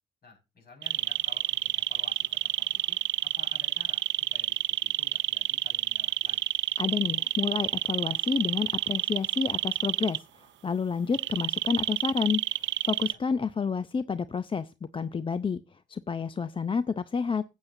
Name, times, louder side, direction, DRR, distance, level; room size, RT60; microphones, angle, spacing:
voice 1, 0.2-2.3 2.6-4.0 4.3-6.5 13.0-13.2, left 4 dB, 50° left, 5.4 m, -53 dB
sound 1, 0.8-10.2 11.1-13.1, right 14 dB, 65° right, 0.5 m, -29 dB
voice 2, 6.8-10.2 10.6-12.4 12.9-15.6 15.9-17.4, left 5 dB, 25° left, 0.5 m, -29 dB
15.0 x 8.1 x 2.6 m
cardioid pair, 90°, 20 cm